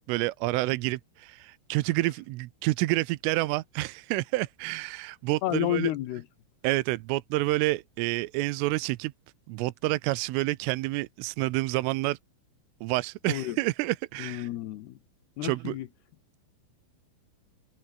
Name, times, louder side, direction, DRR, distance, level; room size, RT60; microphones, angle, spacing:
voice 1, 0.1-5.9 6.6-9.1 9.5-12.2 12.8-14.5 15.4-15.8, right 20 dB, 80° right, 3.3 m, -28 dB
voice 2, 5.4-6.2 13.3-13.6 14.2-15.0 15.4-15.9, left 14 dB, 70° left, 2.7 m, -30 dB
omnidirectional pair, 6.0 m